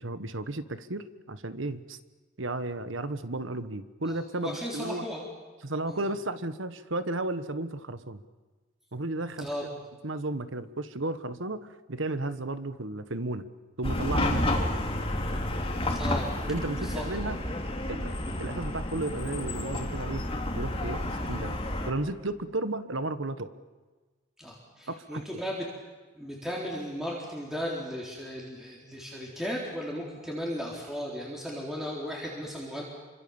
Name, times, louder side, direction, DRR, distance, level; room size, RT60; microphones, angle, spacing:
voice 1, 0.0-2.0 2.4-5.0 5.6-8.2 8.9-9.7 10.0-13.4 13.8-14.7 16.5-17.4 17.9-20.2 20.6-21.6 21.9-23.5 24.9-25.4, right 2 dB, 70° right, 12 dB, 1.4 m, -34 dB
voice 2, 4.1-5.3 5.9-6.0 9.4-9.7 15.9-16.3 16.7-17.0 24.4-25.7 26.1-32.8, equal, ahead, -3 dB, 3.9 m, -36 dB
Chatter / Car passing by / Traffic noise roadway noise, 13.8-21.9, left 1 dB, 30° left, 3.2 m, -30 dB
28.0 x 25.5 x 7.2 m, 1.3 s
head